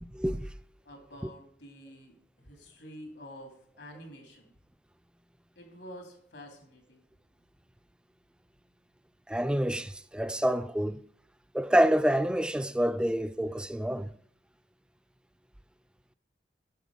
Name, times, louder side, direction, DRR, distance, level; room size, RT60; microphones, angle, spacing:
voice 1, 0.0-0.5 9.3-11.0 11.5-14.1, equal, 5° right, 0.3 m, -27 dB
voice 2, 0.8-4.5 5.6-7.0, equal, 80° left, 2.8 m, -48 dB
10.0 x 6.8 x 5.4 m
head